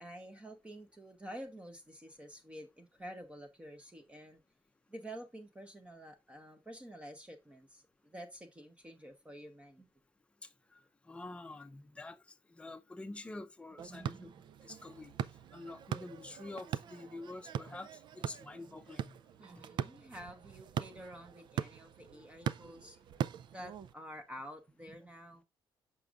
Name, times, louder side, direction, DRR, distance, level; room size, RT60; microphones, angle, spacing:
voice 1, 0.0-4.4 4.9-9.9 13.8-14.3 19.4-23.0 23.5-25.4, equal, 15° right, 0.9 m, -49 dB
voice 2, 11.1-12.2 12.5-14.3 14.6-15.1 15.5-19.2 22.4-22.5, left 2 dB, 15° left, 0.7 m, -47 dB
sound 1, 13.8-23.9, right 9 dB, 60° right, 0.4 m, -41 dB
6.8 x 6.1 x 2.4 m
cardioid pair, 150°, 9 cm